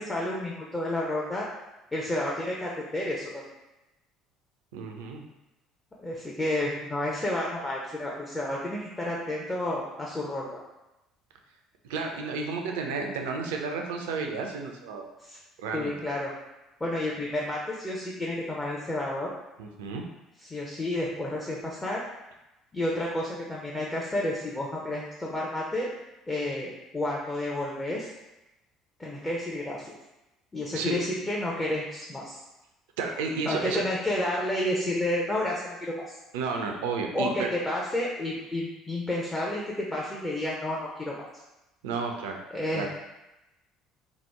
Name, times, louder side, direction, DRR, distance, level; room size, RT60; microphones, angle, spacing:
voice 1, 0.0-1.5 1.9-3.3 6.0-10.5 13.0-13.1 15.2-15.4 15.7-16.3 16.8-19.3 20.5-22.0 22.7-25.9 26.3-28.1 29.0-29.9 30.5-32.4 33.4-36.1 37.1-41.2 42.5-42.9, left 1 dB, 15° left, -4 dB, 0.5 m, -30 dB
voice 2, 4.7-5.2 11.8-15.1 15.6-15.9 19.6-20.0 30.7-31.0 33.0-33.8 36.3-37.5 41.8-42.4 42.7-42.9, right 4 dB, 65° right, 3 dB, 0.3 m, -32 dB
2.9 x 2.0 x 3.4 m, 0.98 s
figure-of-eight pair, 55°, 0 cm